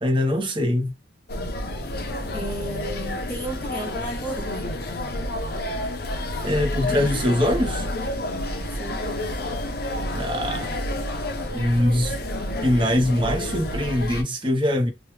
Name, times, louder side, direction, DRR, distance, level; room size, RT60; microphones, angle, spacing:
voice 1, 0.0-0.9 6.4-7.9 10.1-10.8 11.5-12.2 12.6-14.9, left 1 dB, 25° right, 0.8 m, -22 dB
sound 1, 1.3-14.2, left 1 dB, 55° left, 0.7 m, -29 dB
voice 2, 2.3-4.7 8.5-9.3, right 1 dB, 10° left, 0.8 m, -34 dB
3.0 x 2.3 x 3.1 m
head